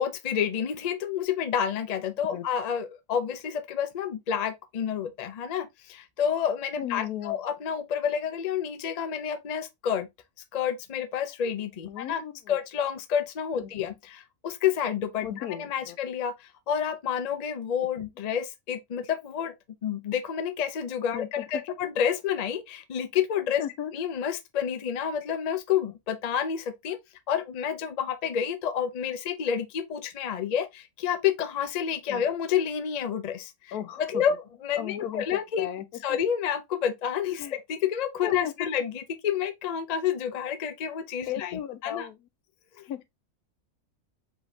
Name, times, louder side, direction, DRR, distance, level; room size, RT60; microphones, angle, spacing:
voice 1, 0.0-10.1 10.5-19.5 19.8-23.6 23.9-27.0 27.3-35.7 36.0-42.1 42.8-42.9, left 8 dB, 55° left, 0.4 m, -29 dB
voice 2, 6.8-7.4 11.9-12.6 13.6-13.7 15.2-16.0 21.1-21.6 23.6-23.9 32.1-32.3 33.7-34.2 34.8-36.0 37.4-37.6 38.2-38.5 41.3-42.2 42.9-43.0, left 10 dB, 90° left, 1.2 m, -35 dB
5.0 x 3.7 x 2.7 m
omnidirectional pair, 1.5 m